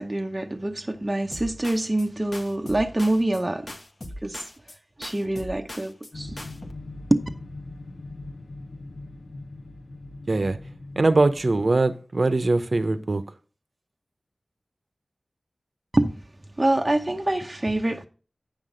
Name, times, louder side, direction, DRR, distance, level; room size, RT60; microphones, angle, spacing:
voice 1, 0.0-3.7 4.2-4.4 5.0-6.4 7.1-7.3 15.9-16.2 16.6-18.1, right 1 dB, 25° right, 0.8 m, -25 dB
sound 1, 1.3-2.1 2.3-3.4 3.7-4.8 5.0-6.1 6.4-6.7, left 1 dB, 50° left, 1.1 m, -40 dB
sound 2, 6.1-11.6, left 2 dB, 70° left, 1.0 m, -40 dB
voice 2, 11.0-13.2, right 2 dB, 55° right, 0.8 m, -21 dB
8.8 x 5.9 x 5.1 m
wide cardioid pair, 60°, 0 cm